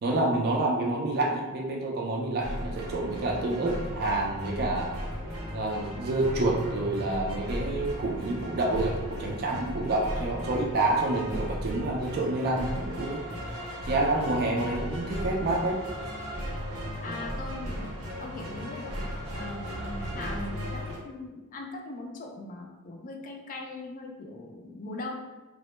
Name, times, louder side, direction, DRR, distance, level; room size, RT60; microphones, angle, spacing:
voice 1, 0.0-4.9 5.5-13.2 13.8-15.8 17.1-17.2, right 2 dB, 45° right, -1 dB, 0.4 m, -28 dB
sound 1, 2.4-21.0, equal, 85° right, 0.7 m, -36 dB
voice 2, 17.0-17.9 18.2-18.9 19.3-25.2, left 2 dB, 40° left, 2 dB, 0.3 m, -40 dB
2.0 x 2.0 x 3.0 m, 1.1 s
head